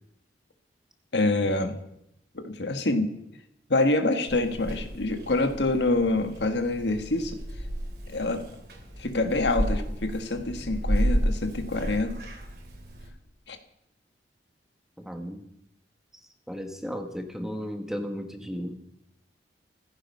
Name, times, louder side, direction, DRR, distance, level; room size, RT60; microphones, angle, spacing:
voice 1, 1.1-1.8 2.3-3.1 3.7-7.4 8.1-8.4 9.0-12.2 13.5-13.6, left 2 dB, 80° left, 7 dB, 1.6 m, -26 dB
Purr / Meow, 4.3-13.1, equal, 65° right, 3.6 m, -32 dB
voice 2, 15.0-15.4 16.1-18.8, equal, 5° right, 5 dB, 1.4 m, -35 dB
15.5 x 14.0 x 5.6 m, 0.81 s
head